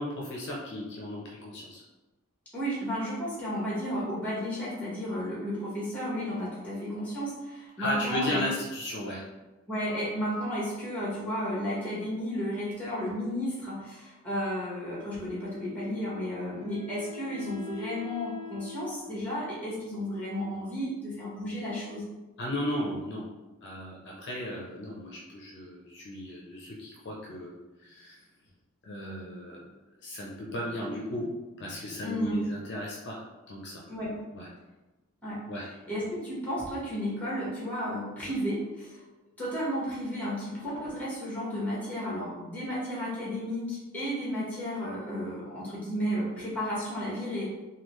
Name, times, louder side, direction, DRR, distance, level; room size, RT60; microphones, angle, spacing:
voice 1, 0.0-1.8 7.8-9.2 22.4-23.3 23.6-27.5 27.8-28.2 28.8-29.7 30.0-31.3 31.6-33.8 34.3-34.5 35.5-35.7, left 1 dB, 50° left, -4 dB, 0.6 m, -35 dB
voice 2, 2.5-8.4 9.7-22.0 32.0-32.4 33.9-34.2 35.2-35.4 35.9-39.0 39.4-47.4, equal, 5° left, -7 dB, 1.2 m, -33 dB
Wind instrument woodwind instrument, 15.6-20.7, left 6 dB, 45° right, 1.0 m, -45 dB
3.6 x 2.3 x 3.1 m, 1.1 s
head